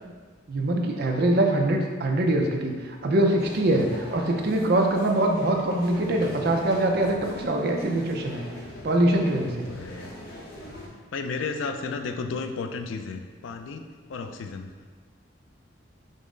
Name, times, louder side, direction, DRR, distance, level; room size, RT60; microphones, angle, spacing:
voice 1, 0.5-8.4 8.8-9.7, right 1 dB, 50° right, 2 dB, 0.5 m, -23 dB
sound 1, 3.4-10.9, left 1 dB, 50° left, 0.7 m, -42 dB
voice 2, 9.4-10.1 11.1-13.8 14.1-14.7, left 4 dB, 75° left, 6 dB, 0.3 m, -33 dB
5.2 x 2.0 x 3.7 m, 1.5 s
head